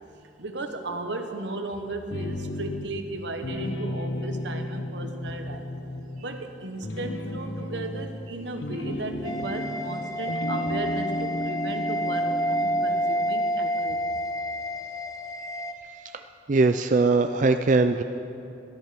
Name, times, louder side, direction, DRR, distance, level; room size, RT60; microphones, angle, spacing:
voice 1, 0.4-5.7 6.2-14.2, right 2 dB, 80° right, 5 dB, 1.3 m, -35 dB
sound 1, 2.1-3.1 3.4-6.4 6.8-9.9 10.2-12.9, left 1 dB, 90° left, 1.2 m, -33 dB
sound 2, 9.2-15.7, equal, 20° left, 1.0 m, -29 dB
voice 2, 16.5-18.0, right 3 dB, 45° right, 7 dB, 0.4 m, -21 dB
16.5 x 13.0 x 5.9 m, 2.9 s
head